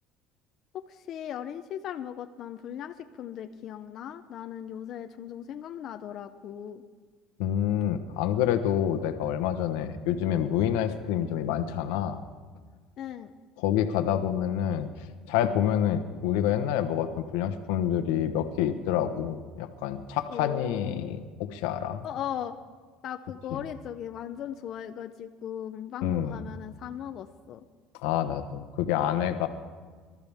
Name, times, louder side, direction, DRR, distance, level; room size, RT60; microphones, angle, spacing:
voice 1, 0.7-6.8 13.0-13.3 20.3-21.1 22.0-22.6 23.0-27.6, left 10 dB, 50° left, 6 dB, 0.6 m, -38 dB
voice 2, 7.4-12.2 13.6-14.9 15.3-22.1 23.5-23.6 26.0-26.4 28.0-29.5, left 10 dB, 85° left, 9 dB, 1.0 m, -27 dB
25.0 x 13.0 x 3.5 m, 1.5 s
cardioid pair, 130°, 0 cm